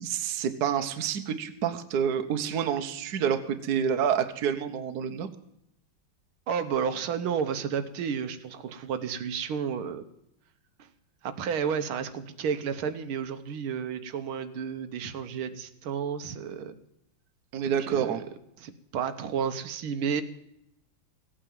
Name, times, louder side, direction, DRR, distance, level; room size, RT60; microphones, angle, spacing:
voice 1, 0.0-5.3 17.5-18.2, right 8 dB, 55° right, 9 dB, 1.4 m, -28 dB
voice 2, 6.5-10.0 11.2-16.7 17.8-18.2 18.6-20.2, right 7 dB, 90° right, 9 dB, 1.8 m, -31 dB
16.5 x 8.8 x 7.4 m, 0.78 s
omnidirectional pair, 2.3 m